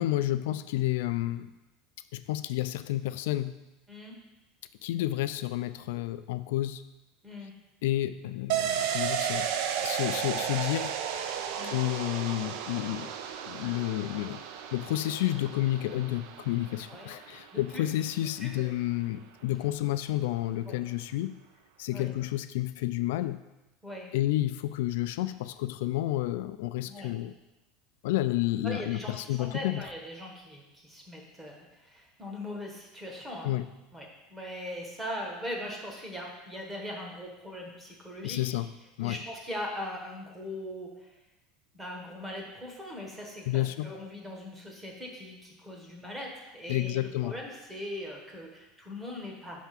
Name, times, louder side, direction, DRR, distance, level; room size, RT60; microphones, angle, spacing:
voice 1, 0.0-1.5 2.1-3.5 4.8-6.8 7.8-9.5 9.8-11.0 11.6-13.1 13.5-14.4 14.7-21.4 21.8-23.4 24.1-27.3 28.0-29.9 33.4-33.7 38.2-38.7 39.0-39.2 43.5-43.9 46.7-47.3, left 15 dB, 75° left, 12 dB, 0.3 m, -30 dB
sound 1, 8.5-17.9 18.2-18.3, right 8 dB, 60° right, 0.5 m, -34 dB
voice 2, 17.5-17.8 18.4-18.5 20.7-20.8 21.9-22.1 23.8-24.1 26.9-27.1 28.6-33.5 33.9-38.4 39.0-41.1 41.7-49.6, left 1 dB, 10° right, 0 dB, 1.0 m, -40 dB
5.6 x 3.5 x 5.8 m, 0.99 s
supercardioid pair, 165°, 0 cm